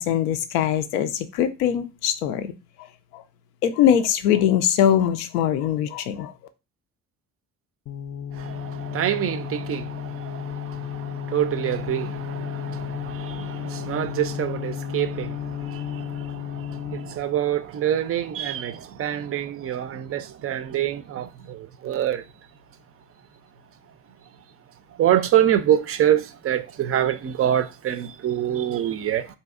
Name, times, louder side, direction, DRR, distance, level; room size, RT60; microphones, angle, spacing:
voice 1, 0.0-2.5 3.1-3.2 3.6-6.3, left 9 dB, 80° left, 0.6 m, -22 dB
sound 1, 7.9-17.2, left 10 dB, 30° left, 0.5 m, -33 dB
voice 2, 8.4-22.2 25.0-29.3, right 11 dB, 30° right, 0.4 m, -26 dB
4.1 x 2.7 x 2.3 m
hypercardioid pair, 50°, 46 cm